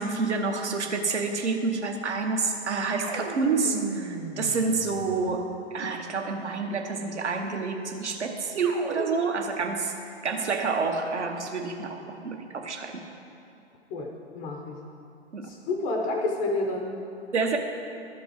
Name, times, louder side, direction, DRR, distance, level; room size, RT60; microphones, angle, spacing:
voice 1, 0.0-5.5 5.7-9.9 10.2-13.0 15.3-15.5 17.3-17.6, right 4 dB, 75° right, 3 dB, 1.1 m, -28 dB
sound 1, 3.0-5.5 8.6-9.6, right 4 dB, 20° right, 0.7 m, -36 dB
voice 2, 13.9-14.8 15.4-16.9, left 2 dB, 10° left, 1 dB, 0.4 m, -29 dB
12.5 x 5.2 x 4.7 m, 2.6 s
figure-of-eight pair, 120°, 35 cm